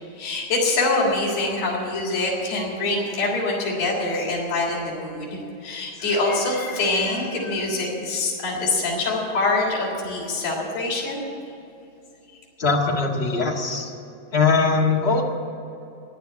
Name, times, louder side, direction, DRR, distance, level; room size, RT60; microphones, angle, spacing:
voice 1, 0.1-11.2, left 2 dB, 50° left, -4 dB, 4.5 m, -25 dB
voice 2, 12.6-13.9 14.3-15.2, left 4 dB, 30° left, -1 dB, 1.2 m, -21 dB
14.0 x 10.0 x 9.6 m, 2.6 s
omnidirectional pair, 3.8 m